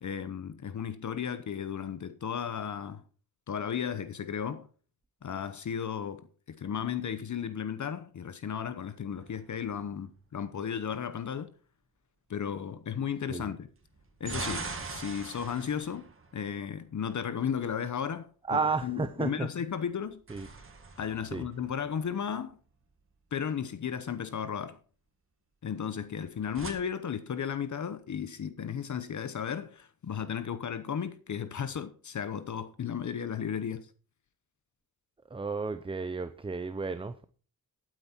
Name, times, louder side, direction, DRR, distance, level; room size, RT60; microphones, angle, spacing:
voice 1, 0.0-3.0 3.5-4.7 5.2-11.5 12.3-13.7 14.2-16.1 16.3-20.2 21.0-22.6 23.3-24.8 25.6-33.9, left 7 dB, 55° left, 1.0 m, -34 dB
sound 1, 9.1-10.2 13.8-17.1 19.9-22.4 26.1-26.7, right 3 dB, 35° right, 2.2 m, -42 dB
voice 2, 18.5-19.5 20.3-20.5 21.3-21.5 35.3-37.2, right 4 dB, 15° right, 0.6 m, -32 dB
12.5 x 9.1 x 4.4 m
wide cardioid pair, 120°, 36 cm